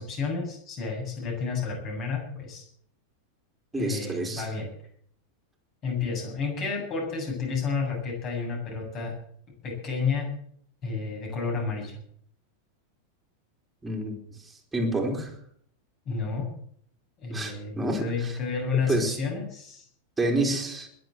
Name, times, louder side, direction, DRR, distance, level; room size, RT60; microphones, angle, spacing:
voice 1, 0.0-2.6 3.8-4.7 5.8-9.1 9.6-10.3 10.8-12.0 16.0-16.5 17.2-19.9, left 5 dB, 35° left, 1 dB, 7.9 m, -31 dB
voice 2, 3.7-4.5 13.8-14.1 14.7-15.3 17.3-18.3 18.9-19.2 20.2-20.9, right 1 dB, 10° right, 0 dB, 3.9 m, -28 dB
21.0 x 8.0 x 7.9 m, 0.63 s
figure-of-eight pair, 90°, 0 cm